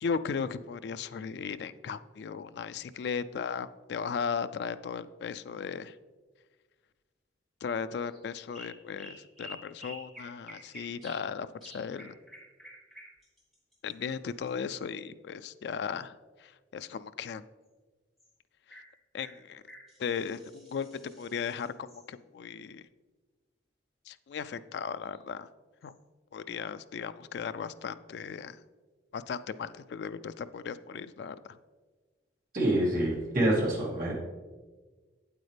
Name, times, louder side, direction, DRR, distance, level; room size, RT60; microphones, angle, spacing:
voice 1, 0.0-6.0 7.6-12.2 13.8-16.2 16.4-17.4 19.1-19.6 20.0-22.8 24.1-25.5 25.8-25.9 26.3-28.6 29.1-31.6, left 6 dB, 65° left, 12 dB, 0.3 m, -36 dB
sound 1, 8.0-8.2 8.5-11.3 11.6-14.8 18.2-18.3 18.7-18.9 19.2-22.1 25.0-25.2 25.8-25.9, equal, ahead, 1.6 m, -50 dB
voice 2, 32.5-34.1, right 1 dB, 45° right, -6 dB, 2.6 m, -26 dB
8.5 x 8.1 x 3.3 m, 1.4 s
head